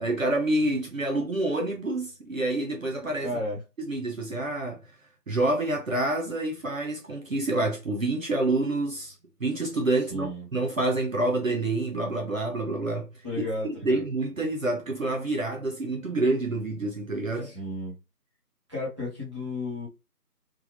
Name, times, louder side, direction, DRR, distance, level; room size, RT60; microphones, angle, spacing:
voice 1, 0.0-3.3 3.8-4.8 5.3-9.1 9.4-13.1 13.4-13.5 13.8-17.5, right 2 dB, 55° right, 0.7 m, -27 dB
voice 2, 3.2-3.6 10.1-10.5 13.2-14.0 17.4-18.0 18.7-19.9, left 1 dB, 20° right, 1.2 m, -33 dB
3.4 x 2.5 x 3.4 m
figure-of-eight pair, 165°, 47 cm